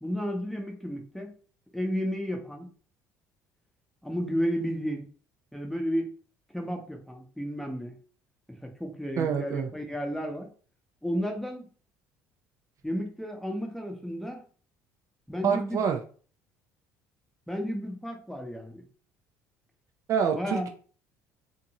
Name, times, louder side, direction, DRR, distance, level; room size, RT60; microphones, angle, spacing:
voice 1, 0.0-1.3 1.7-2.7 4.0-5.1 5.5-6.1 6.5-8.0 8.6-10.5 11.0-11.7 12.8-14.4 15.3-15.8 17.5-18.9 20.3-20.7, equal, 5° left, 2 dB, 0.8 m, -32 dB
voice 2, 9.2-9.7 15.4-16.0 20.1-20.7, right 7 dB, 50° right, 4 dB, 0.4 m, -26 dB
2.6 x 2.6 x 2.9 m, 0.42 s
hypercardioid pair, 70°, 7 cm